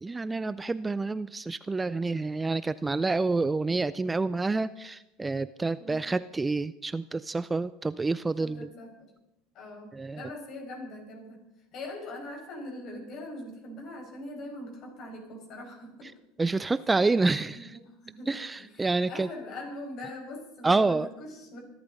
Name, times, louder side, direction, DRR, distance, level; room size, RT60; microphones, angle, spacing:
voice 1, 0.0-8.7 9.9-10.2 16.4-17.8 18.3-19.3 20.6-21.1, right 3 dB, 15° right, 16 dB, 0.4 m, -28 dB
voice 2, 8.4-9.1 9.5-11.4 11.7-16.1 17.6-21.6, left 1 dB, 50° left, 2 dB, 5.7 m, -42 dB
25.0 x 12.0 x 4.0 m, 0.93 s
hypercardioid pair, 80°, 0 cm